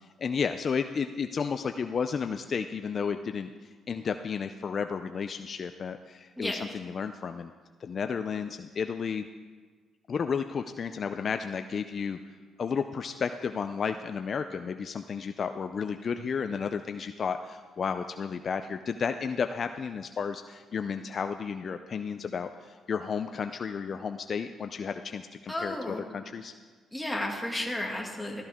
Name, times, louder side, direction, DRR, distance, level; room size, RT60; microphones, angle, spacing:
voice 1, 0.0-7.5 7.8-9.3 10.1-12.2 12.6-26.5, left 6 dB, 50° left, 8 dB, 0.4 m, -32 dB
voice 2, 6.4-6.7 25.5-26.1 26.9-28.4, left 1 dB, 5° left, -1 dB, 2.2 m, -33 dB
13.5 x 13.5 x 3.6 m, 1.5 s
cardioid pair, 90°, 0 cm